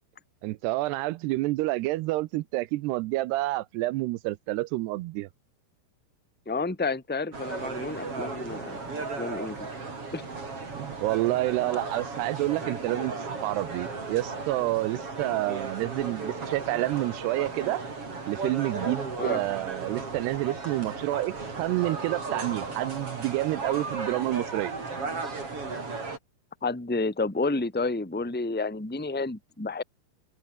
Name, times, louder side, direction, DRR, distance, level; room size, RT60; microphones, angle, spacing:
voice 1, 0.4-5.3 10.7-17.8 18.3-24.7, right 18 dB, 80° right, 2.7 m, -29 dB
voice 2, 6.5-8.8 9.2-9.7 10.1-10.2 19.2-19.4 26.6-29.8, left 3 dB, 5° left, 2.1 m, -30 dB
sound 1, 7.3-26.2, right 4 dB, 30° right, 5.9 m, -35 dB
open air
omnidirectional pair, 5.0 m